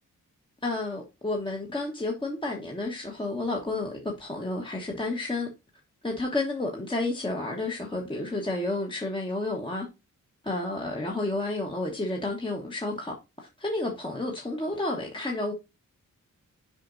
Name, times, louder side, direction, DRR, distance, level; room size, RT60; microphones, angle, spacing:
voice 1, 0.6-5.5 6.0-9.9 10.4-15.5, left 2 dB, 15° left, 1.1 m, -31 dB
7.5 x 5.2 x 2.6 m
wide cardioid pair, 90°, 32 cm